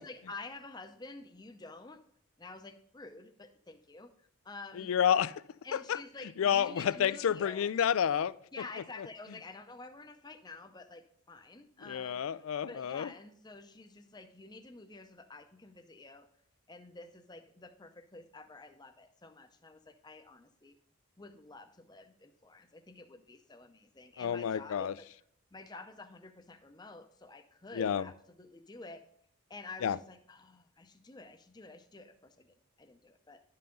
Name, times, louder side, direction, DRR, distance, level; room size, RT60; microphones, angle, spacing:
voice 1, 0.0-2.0 2.4-4.1 4.4-4.9 5.6-7.7 8.5-16.3 16.7-20.7 21.2-25.1 25.5-29.1 29.5-33.4, left 3 dB, 20° left, 0.6 m, -50 dB
voice 2, 4.8-5.3 5.7-6.0 6.4-8.3 11.9-13.1 24.2-24.9 27.7-28.0 29.8-30.0, left 8 dB, 75° left, 0.3 m, -29 dB
11.5 x 5.7 x 3.8 m
head